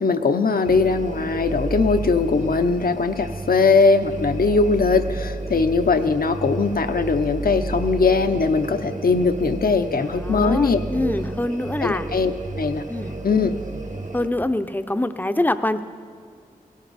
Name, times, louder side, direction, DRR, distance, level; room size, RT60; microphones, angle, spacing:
voice 1, 0.0-10.8 11.8-12.8 13.2-13.5, left 4 dB, 70° left, 8 dB, 0.7 m, -20 dB
sound 1, 0.6-14.3, right 2 dB, 50° right, 1.1 m, -31 dB
voice 2, 10.0-12.1 12.9-13.1 14.1-15.8, left 1 dB, 10° left, 10 dB, 0.6 m, -25 dB
17.0 x 16.0 x 4.2 m, 2.4 s
wide cardioid pair, 70°, 16 cm